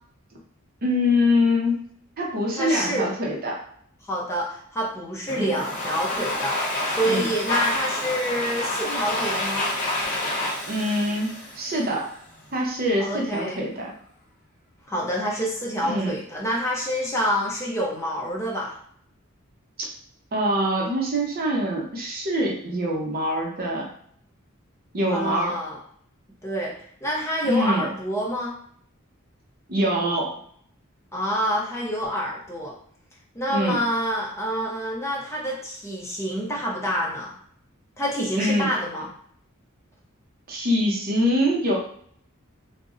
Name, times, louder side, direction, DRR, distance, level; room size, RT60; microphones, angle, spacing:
voice 1, 0.8-1.8 2.2-3.6 5.4-5.6 7.0-7.3 10.7-12.1 12.5-13.9 15.8-16.1 20.3-23.9 24.9-25.6 27.4-27.8 29.7-30.4 33.5-33.8 38.4-38.7 40.5-41.8, left 1 dB, 45° right, -1 dB, 0.6 m, -24 dB
voice 2, 2.6-3.1 4.0-9.7 13.0-13.6 14.9-18.8 25.1-25.8 26.4-26.7 27.0-28.6 31.1-32.7 33.3-37.3 38.0-39.1, equal, 15° left, -3 dB, 0.5 m, -27 dB
Domestic sounds home sounds, 5.3-12.2, left 1 dB, 40° left, 0.8 m, -28 dB
2.5 x 2.0 x 3.6 m, 0.62 s
head